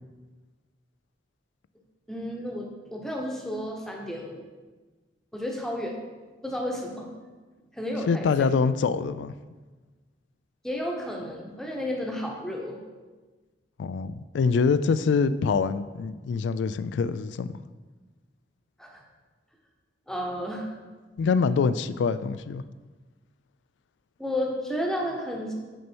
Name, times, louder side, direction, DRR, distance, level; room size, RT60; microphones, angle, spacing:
voice 1, 2.1-4.4 5.3-6.0 6.4-7.1 7.7-8.5 10.6-12.8 18.8-19.0 20.1-20.7 24.2-25.5, equal, 5° left, 0 dB, 0.9 m, -32 dB
voice 2, 8.1-9.3 13.8-17.6 21.2-22.6, left 5 dB, 85° left, 14 dB, 0.3 m, -25 dB
6.3 x 5.4 x 4.5 m, 1.3 s
head